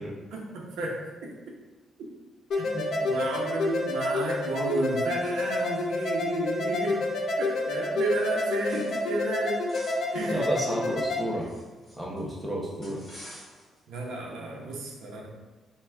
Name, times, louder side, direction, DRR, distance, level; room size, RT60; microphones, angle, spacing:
voice 1, 0.3-1.3 2.5-7.0 7.4-9.7 10.1-10.5 13.9-15.3, right 2 dB, 85° right, -1 dB, 0.9 m, -32 dB
sound 1, 2.5-11.2, left 2 dB, 55° left, 0.7 m, -29 dB
sound 2, 8.0-9.2 9.4-12.2 12.8-13.8, equal, 15° left, 1.4 m, -49 dB
voice 2, 10.2-11.5 11.9-13.0, equal, 10° right, -4 dB, 0.7 m, -31 dB
5.4 x 2.4 x 3.5 m, 1.2 s
cardioid pair, 175°, 0 cm